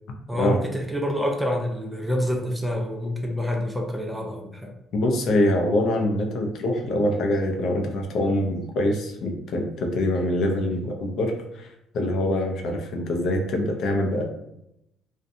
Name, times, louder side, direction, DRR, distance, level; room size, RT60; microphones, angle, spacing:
voice 1, 0.3-4.7, equal, ahead, 1 dB, 0.4 m, -27 dB
voice 2, 4.9-11.7 11.9-14.2, left 1 dB, 60° left, 2 dB, 0.4 m, -24 dB
2.6 x 2.1 x 2.5 m, 0.82 s
cardioid pair, 120°, 0 cm